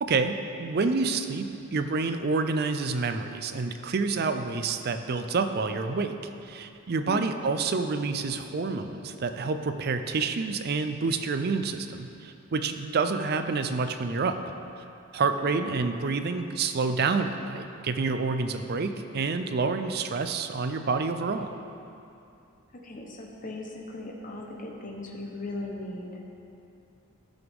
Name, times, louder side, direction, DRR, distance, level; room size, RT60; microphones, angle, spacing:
voice 1, 0.0-6.2 6.4-14.4 15.1-21.5, right 4 dB, 45° right, 8 dB, 0.4 m, -28 dB
voice 2, 7.0-7.4 15.4-15.9 22.7-26.2, left 2 dB, 40° left, -1 dB, 0.9 m, -38 dB
12.5 x 6.0 x 3.5 m, 2.7 s
head